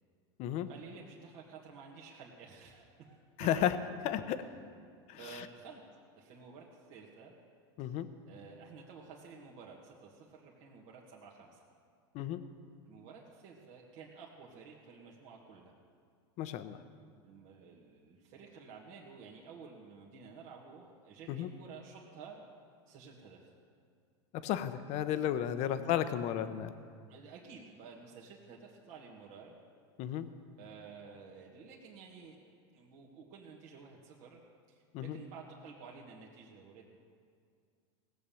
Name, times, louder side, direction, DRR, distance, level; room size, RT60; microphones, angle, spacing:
voice 1, 0.7-3.6 5.1-7.3 7.8-7.9 8.3-11.6 12.8-15.7 17.2-22.5 22.9-23.5 25.5-25.7 27.1-29.6 30.6-32.4 32.7-34.4 34.7-37.0, right 5 dB, 55° right, -2 dB, 1.9 m, -52 dB
voice 2, 3.4-3.8 4.0-4.4 5.1-5.2 7.8-8.1 12.1-12.4 16.4-16.8 21.3-21.5 24.4-26.7 30.0-30.3 34.9-35.2, left 11 dB, 50° left, 11 dB, 0.9 m, -33 dB
17.5 x 7.6 x 7.1 m, 2.2 s
supercardioid pair, 115°, 15 cm